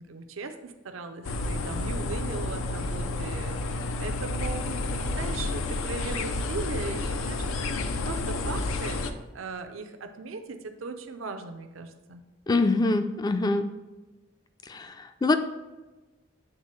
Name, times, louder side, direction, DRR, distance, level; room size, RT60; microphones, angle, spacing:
voice 1, 0.0-7.5 7.8-12.2, right 4 dB, 85° right, 7 dB, 0.6 m, -38 dB
sound 1, 1.2-9.1, left 2 dB, 90° left, 0.5 m, -30 dB
voice 2, 12.5-13.7 14.7-15.4, left 2 dB, 20° left, 9 dB, 0.3 m, -24 dB
8.8 x 3.7 x 3.2 m, 1.2 s
head